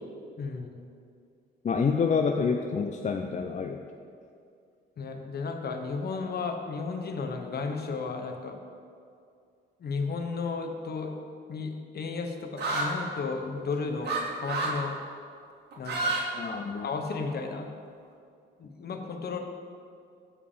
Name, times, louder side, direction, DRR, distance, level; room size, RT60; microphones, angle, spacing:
voice 1, 0.4-0.8 5.0-8.6 9.8-11.1 11.5-14.9 15.8-16.2 16.8-17.7 18.6-19.4, left 4 dB, 50° left, 4 dB, 1.2 m, -33 dB
voice 2, 1.6-3.8 16.3-16.9, left 5 dB, 35° left, 4 dB, 0.6 m, -27 dB
sound 1, 12.6-12.9 14.1-14.2 14.5-14.8 15.7-16.2 16.5-17.3, right 3 dB, 55° right, 2.2 m, -29 dB
14.5 x 4.9 x 5.1 m, 2.4 s
cardioid pair, 90°, 20 cm